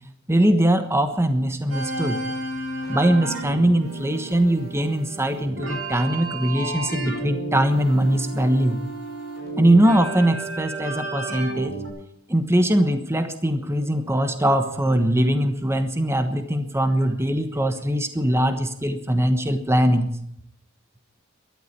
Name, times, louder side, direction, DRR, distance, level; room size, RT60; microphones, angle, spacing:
voice 1, 0.3-2.2 2.9-8.8 9.6-11.7 12.3-20.1, right 1 dB, 15° right, 8 dB, 1.2 m, -21 dB
sound 1, 1.7-11.9, right 2 dB, 85° right, 6.4 m, -32 dB
13.5 x 11.5 x 8.6 m, 0.75 s
head